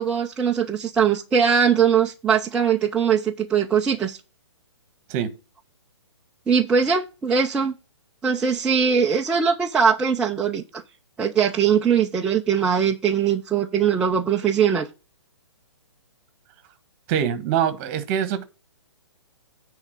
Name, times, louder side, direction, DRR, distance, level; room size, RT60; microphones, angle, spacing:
voice 1, 0.0-4.2 6.5-7.7 8.2-10.8 11.2-14.9, right 7 dB, 5° right, 0.4 m, -21 dB
voice 2, 17.1-18.4, right 9 dB, 30° right, 1.2 m, -24 dB
9.7 x 3.6 x 6.4 m
hypercardioid pair, 150°, 16 cm